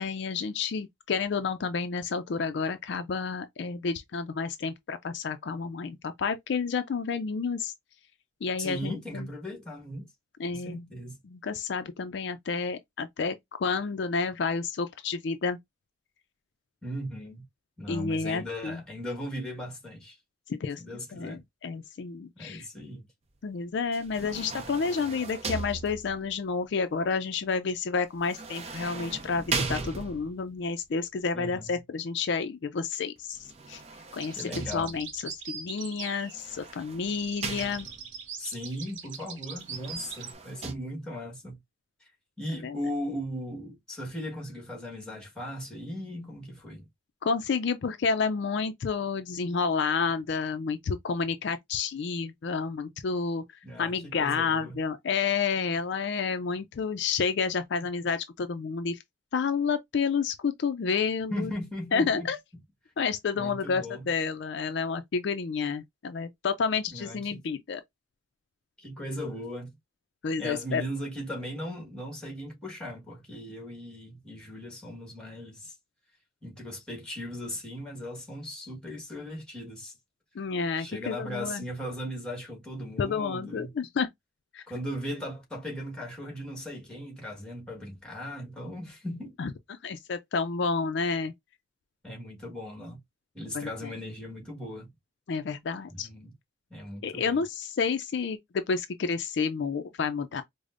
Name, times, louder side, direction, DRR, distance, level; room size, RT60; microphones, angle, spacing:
voice 1, 0.0-7.7 8.4-9.3 10.4-10.8 11.3-15.6 17.9-18.8 20.5-20.8 21.1-22.7 23.4-33.8 34.1-37.9 42.5-42.8 47.2-59.0 59.3-61.5 61.9-62.4 63.0-67.8 70.2-70.8 80.4-81.6 83.0-84.1 84.5-84.6 89.4-89.5 89.8-91.3 93.5-93.9 95.3-96.1 97.0-100.4, left 5 dB, 60° left, 0.4 m, -30 dB
voice 2, 8.6-10.1 10.5-11.2 16.8-17.4 17.8-20.2 20.8-21.4 22.4-23.0 31.3-31.8 34.3-34.9 38.4-41.6 42.0-42.1 42.4-46.9 53.6-54.8 61.3-62.3 63.3-64.0 66.9-67.4 68.8-69.7 70.4-75.8 76.4-80.0 80.8-83.7 84.7-89.4 92.0-93.0 93.3-94.9 95.9-96.3 96.7-97.4, equal, 5° left, 1.4 m, -38 dB
sound 1, 23.9-26.4 28.2-30.5 33.4-35.2 36.2-38.2 39.6-40.7, right 4 dB, 30° right, 0.5 m, -38 dB
sound 2, 34.2-36.7 37.0-40.3, right 6 dB, 70° right, 0.8 m, -42 dB
4.9 x 2.0 x 2.4 m
head